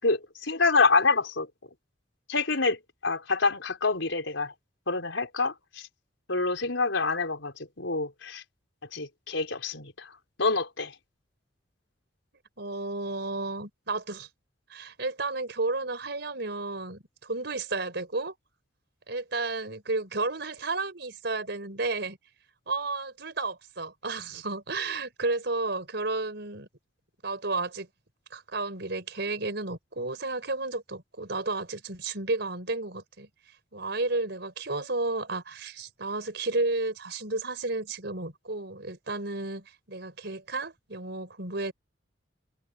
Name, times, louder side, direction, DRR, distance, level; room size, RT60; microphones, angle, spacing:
voice 1, 0.0-1.5 2.3-4.5 4.9-5.9 6.3-8.4 8.9-10.1 10.4-10.9, left 3 dB, 80° left, 4.7 m, -27 dB
voice 2, 12.6-14.3 14.7-18.3 19.1-22.2 22.7-26.7 27.2-27.9 28.3-33.3 33.7-41.7, right 3 dB, 60° right, 5.4 m, -32 dB
head